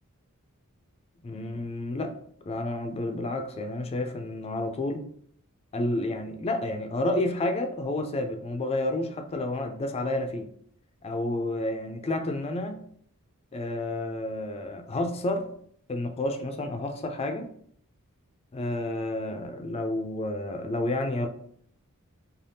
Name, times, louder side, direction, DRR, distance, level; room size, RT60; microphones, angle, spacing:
voice 1, 1.2-2.2 2.5-5.1 5.7-10.5 11.0-12.8 13.5-15.5 15.9-17.5 18.5-21.3, left 2 dB, 25° left, 6 dB, 0.3 m, -30 dB
3.3 x 2.3 x 2.7 m, 0.63 s
head